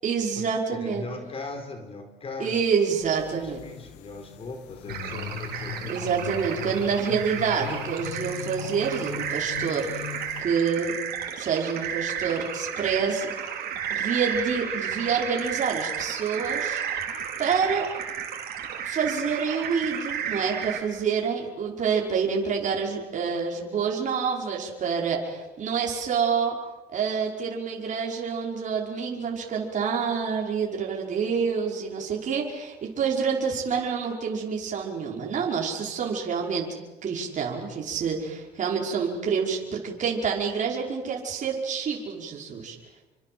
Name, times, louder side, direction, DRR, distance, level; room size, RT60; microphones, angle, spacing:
voice 1, 0.0-1.1 2.4-3.6 5.9-10.1 10.4-11.0 11.4-13.3 13.9-16.8 17.4-17.9 18.8-26.6 26.9-36.7 37.0-42.8, right 6 dB, 45° right, -1 dB, 5.5 m, -27 dB
voice 2, 0.7-2.6 3.3-6.1, left 3 dB, 35° left, 5 dB, 4.8 m, -39 dB
sound 1, 3.0-10.4, left 12 dB, 90° left, 1.7 m, -39 dB
sound 2, 4.9-20.8, right 8 dB, 65° right, 5.4 m, -33 dB
29.0 x 25.5 x 7.9 m, 1.2 s
cardioid pair, 110°, 17 cm